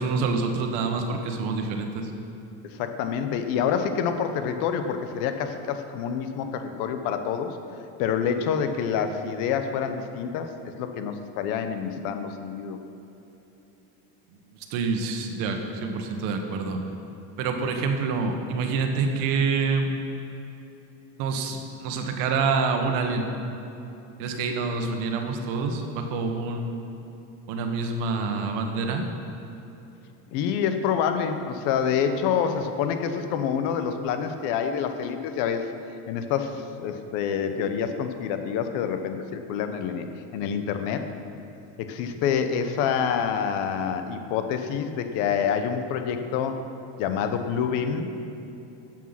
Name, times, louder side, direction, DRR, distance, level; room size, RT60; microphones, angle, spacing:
voice 1, 0.0-2.1 14.7-16.8 17.4-19.9 21.2-23.3 24.2-26.9 27.5-29.0, right 4 dB, 70° right, 4 dB, 1.4 m, -27 dB
voice 2, 2.6-7.6 8.0-10.5 10.8-12.8 30.3-35.7 36.1-40.1 40.3-41.0 41.8-46.6 47.0-48.1, left 7 dB, 65° left, 8 dB, 0.9 m, -27 dB
12.0 x 7.5 x 5.7 m, 2.9 s
cardioid pair, 170°, 34 cm